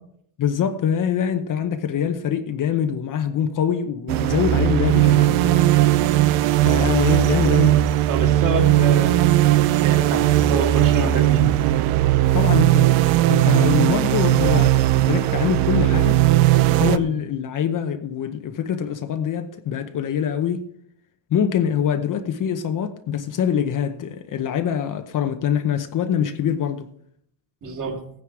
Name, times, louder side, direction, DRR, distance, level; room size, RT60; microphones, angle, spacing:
voice 1, 0.4-5.7 6.6-7.8 12.3-12.9 13.3-16.2 16.8-20.6 21.3-26.9, left 8 dB, 40° left, 0.9 m, -24 dB
sound 1, 4.1-17.0, right 14 dB, 85° right, 0.9 m, -18 dB
voice 2, 8.1-9.2 9.8-11.5 17.0-17.1 27.6-28.0, right 3 dB, 40° right, 2.8 m, -26 dB
16.0 x 9.7 x 4.8 m
cardioid pair, 145°, 50 cm